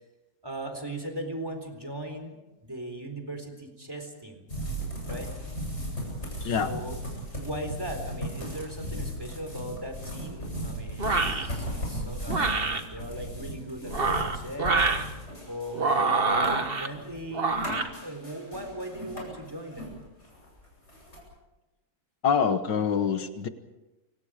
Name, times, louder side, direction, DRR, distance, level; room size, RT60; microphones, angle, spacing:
voice 1, 0.4-2.4 2.6-4.5 5.1-5.3 6.4-7.0 7.4-14.9 15.5-17.7 18.0-20.0, right 1 dB, 10° right, 5 dB, 3.9 m, -38 dB
sound 1, 4.5-19.9 20.2-21.2, equal, 35° left, 8.3 m, -36 dB
sound 2, 11.0-11.5 12.3-12.8 13.8-15.0 15.7-16.9 17.3-17.9, right 3 dB, 30° right, 1.6 m, -26 dB
voice 2, 22.2-23.5, left 6 dB, 65° left, 10 dB, 1.8 m, -25 dB
29.5 x 25.5 x 5.0 m, 1.0 s
omnidirectional pair, 2.1 m